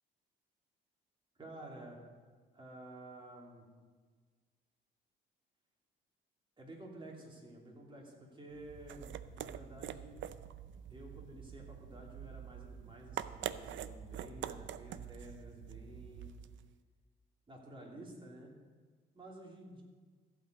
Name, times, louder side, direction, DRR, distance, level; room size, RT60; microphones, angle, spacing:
voice 1, 1.4-2.0 2.5-3.6 6.6-10.2 10.9-16.3 17.5-18.5 19.1-19.8, right 1 dB, 25° right, -2 dB, 3.1 m, -51 dB
sound 1, 8.5-16.7, right 10 dB, 70° right, 0.5 m, -45 dB
15.0 x 5.2 x 8.2 m, 1.5 s
cardioid pair, 90°, 20 cm